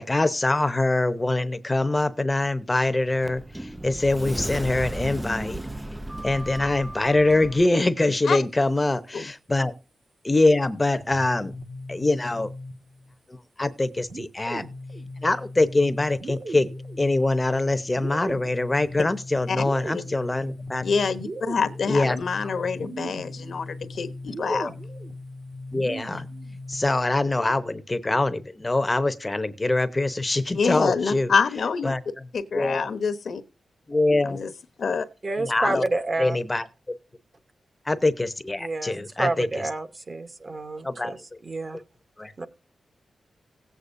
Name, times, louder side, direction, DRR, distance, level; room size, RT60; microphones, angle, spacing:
voice 1, 0.0-3.4 3.8-5.6 6.2-9.7 10.2-11.5 11.9-12.5 13.6-14.6 15.2-16.7 17.0-20.8 21.9-22.2 22.4-22.5 24.5-24.7 25.7-26.3 26.7-31.3 31.8-32.0 32.5-32.9 33.9-34.4 35.4-35.9 36.2-36.6 37.9-39.5 40.8-41.1 42.2-42.3, left 2 dB, 20° left, 13 dB, 0.8 m, -24 dB
Sliding door, 2.9-7.7, right 1 dB, 10° right, 0.4 m, -34 dB
sound 1, 11.0-13.1 14.1-27.0, equal, 55° right, 1.7 m, -38 dB
voice 2, 20.8-24.7 30.5-31.9 32.3-33.4 34.2-34.5 34.8-35.0 35.7-35.8, left 5 dB, 65° left, 12 dB, 1.0 m, -26 dB
voice 3, 35.2-36.4 38.6-41.8 42.4-42.5, right 2 dB, 35° right, 9 dB, 1.1 m, -29 dB
17.5 x 8.2 x 2.6 m, 0.34 s
wide cardioid pair, 115°, 0 cm